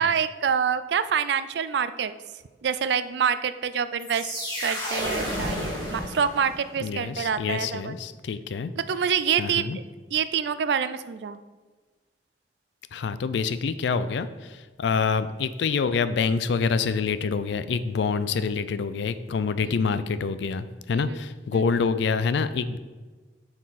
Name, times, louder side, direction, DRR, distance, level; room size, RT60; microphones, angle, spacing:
voice 1, 0.0-2.1 2.6-4.3 4.6-7.9 8.8-9.7 10.1-11.4 19.8-20.0 20.9-21.2 21.5-21.8, right 7 dB, 70° right, 14 dB, 0.3 m, -26 dB
sound 1, 4.0-6.8, left 1 dB, 25° left, 1.7 m, -31 dB
voice 2, 6.8-8.7 9.4-9.8 12.9-22.8, left 5 dB, 75° left, 13 dB, 0.4 m, -26 dB
7.3 x 4.4 x 4.0 m, 1.4 s
head